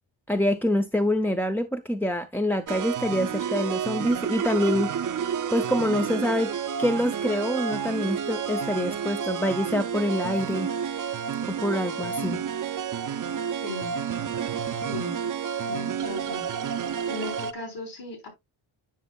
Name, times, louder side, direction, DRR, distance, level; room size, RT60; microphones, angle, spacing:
voice 1, 0.3-5.2 5.5-6.5 6.8-10.7 11.5-12.4, left 1 dB, 5° left, 0.4 m, -26 dB
sound 1, 2.7-17.5, right 8 dB, 45° right, 0.6 m, -30 dB
voice 2, 14.9-15.2 15.7-16.4 17.1-18.3, left 3 dB, 60° left, 4.3 m, -36 dB
9.5 x 6.2 x 2.3 m
wide cardioid pair, 125°, 46 cm